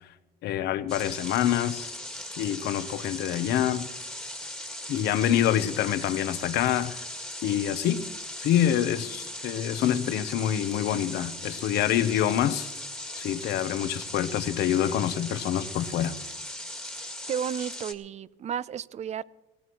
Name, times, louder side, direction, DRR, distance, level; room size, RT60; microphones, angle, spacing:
voice 1, 0.4-2.0 2.4-3.9 4.9-7.0 7.4-8.0 8.4-12.7 13.2-16.2, left 11 dB, 80° left, 0.9 m, -26 dB
sound 1, 0.9-17.9, left 1 dB, 5° left, 1.8 m, -38 dB
voice 2, 17.3-19.2, right 8 dB, 40° right, 0.5 m, -32 dB
18.5 x 17.0 x 3.1 m
cardioid pair, 110°, 17 cm